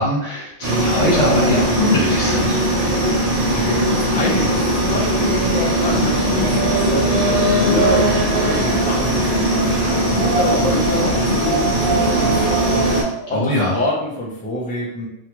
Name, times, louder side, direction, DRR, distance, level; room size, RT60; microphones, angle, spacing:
voice 1, 0.0-2.6 13.3-13.7, left 1 dB, 85° left, -7 dB, 1.5 m, -21 dB
sound 1, 0.6-13.0, right 1 dB, 35° right, 1.0 m, -19 dB
voice 2, 3.5-12.7 13.3-15.1, left 1 dB, 10° left, -5 dB, 0.5 m, -26 dB
Wind, 5.5-13.3, right 5 dB, 90° right, 1.0 m, -28 dB
3.1 x 2.4 x 3.0 m, 0.85 s
omnidirectional pair, 1.3 m